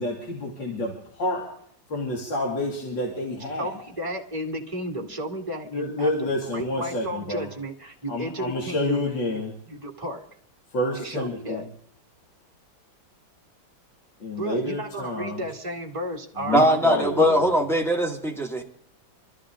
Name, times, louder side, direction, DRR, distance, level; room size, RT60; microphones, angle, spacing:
voice 1, 0.0-1.5 1.9-3.8 5.7-7.5 8.1-9.5 10.7-11.6 14.2-15.4 16.4-17.5, left 1 dB, 65° left, -2 dB, 3.3 m, -29 dB
voice 2, 3.4-9.0 9.7-10.3 10.9-11.7 14.3-17.0, right 1 dB, 15° right, 0 dB, 2.1 m, -33 dB
voice 3, 16.5-18.6, equal, ahead, 2 dB, 1.9 m, -21 dB
25.0 x 14.0 x 3.8 m, 0.63 s
omnidirectional pair, 2.2 m